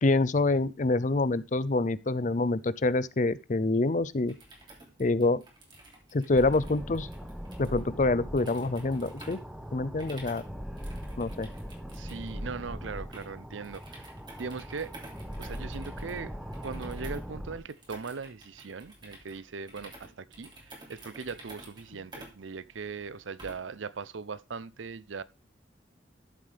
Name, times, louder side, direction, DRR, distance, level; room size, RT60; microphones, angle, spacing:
voice 1, 0.0-4.3 5.0-5.4 6.1-7.1 7.6-9.4 9.7-10.4 11.2-11.5, left 2 dB, 40° left, 0.5 m, -26 dB
Keyboard Clicking (Typing), 4.2-23.8, right 1 dB, 25° right, 3.0 m, -52 dB
sound 1, 6.3-17.6, equal, 5° right, 1.0 m, -40 dB
voice 2, 11.9-14.1 14.4-14.9 15.4-25.2, right 5 dB, 90° right, 0.6 m, -40 dB
13.0 x 7.4 x 3.4 m
head